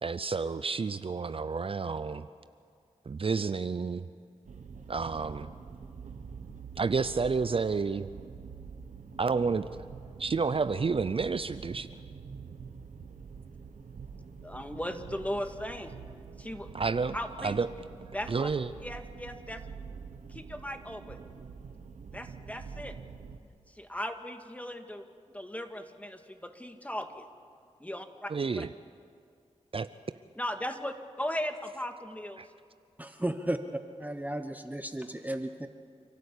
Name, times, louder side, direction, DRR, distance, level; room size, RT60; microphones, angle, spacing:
voice 1, 0.0-2.3 3.1-4.1 4.9-5.5 6.8-8.1 9.2-9.7 10.2-11.9 16.7-17.7 18.3-18.7 28.3-28.7 29.7-29.9, right 4 dB, 50° right, 13 dB, 0.6 m, -30 dB
sound 1, 4.4-23.4, right 5 dB, 85° right, 1.2 m, -46 dB
voice 2, 14.4-16.0 16.4-16.7 17.1-17.6 18.1-18.5 18.8-19.6 20.3-21.2 22.1-23.0 23.7-25.1 25.3-27.3 27.8-28.3 28.6-28.7 30.4-32.4, left 1 dB, 10° left, 6 dB, 1.9 m, -37 dB
voice 3, 33.0-33.6 34.0-35.7, right 1 dB, 15° right, 7 dB, 1.0 m, -34 dB
29.0 x 12.5 x 8.5 m, 2.3 s
cardioid pair, 50°, 12 cm